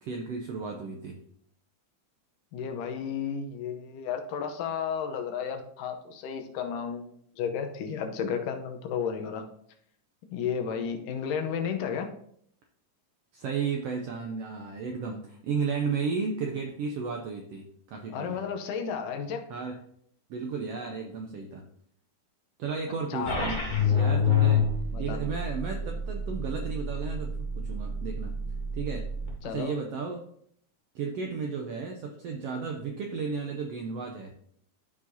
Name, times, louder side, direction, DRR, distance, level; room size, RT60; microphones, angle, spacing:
voice 1, 0.0-1.2 13.3-18.4 19.5-19.8 20.3-21.6 22.6-24.7 25.0-28.3 28.7-29.1 29.4-30.2 30.9-34.3, right 5 dB, 80° right, 2 dB, 1.4 m, -33 dB
voice 2, 2.5-7.1 7.4-9.4 10.3-12.1 18.1-19.5 23.1-23.5 24.9-25.2 29.4-29.8, left 7 dB, 85° left, 5 dB, 2.5 m, -32 dB
sound 1, 23.3-29.3, left 5 dB, 30° left, 0.9 m, -28 dB
13.0 x 4.8 x 2.7 m, 0.67 s
omnidirectional pair, 3.6 m